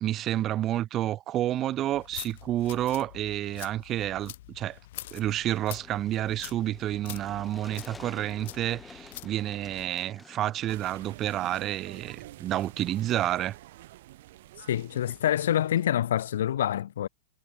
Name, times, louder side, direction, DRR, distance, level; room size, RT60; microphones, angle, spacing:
voice 1, 0.0-4.8 5.1-13.6, right 13 dB, 20° right, 0.4 m, -30 dB
sound 1, 1.9-9.9, left 15 dB, 50° left, 4.6 m, -45 dB
sound 2, 5.5-11.1, left 4 dB, 5° left, 1.4 m, -51 dB
sound 3, 10.7-15.9, right 16 dB, 50° right, 3.6 m, -48 dB
voice 2, 14.7-17.1, left 11 dB, 70° left, 0.9 m, -26 dB
supercardioid pair, 170°, 0 cm